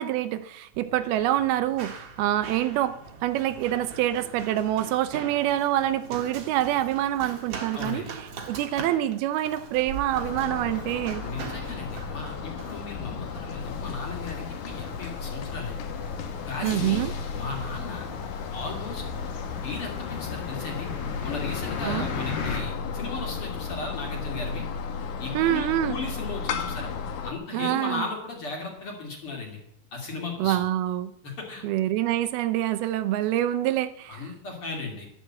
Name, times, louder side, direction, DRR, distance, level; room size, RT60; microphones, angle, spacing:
voice 1, 0.0-8.0 8.5-11.2 16.6-17.1 21.8-22.1 25.3-26.0 27.5-28.0 30.4-31.1 31.6-34.2, right 13 dB, 80° right, 12 dB, 2.5 m, -26 dB
Run, 0.7-18.0, right 5 dB, 50° right, 2.2 m, -43 dB
voice 2, 7.7-8.1 11.2-15.8 16.5-17.0 17.3-18.1 18.5-19.0 19.6-20.9 21.2-24.7 25.2-26.9 27.2-29.6 29.9-30.6 31.2-31.6 34.1-35.1, left 3 dB, 35° left, 1 dB, 3.2 m, -36 dB
sound 1, 10.1-27.3, left 6 dB, 60° left, 2.3 m, -34 dB
sound 2, 13.6-22.6, left 5 dB, 80° left, 4.5 m, -38 dB
12.0 x 11.0 x 7.5 m, 0.73 s
omnidirectional pair, 4.5 m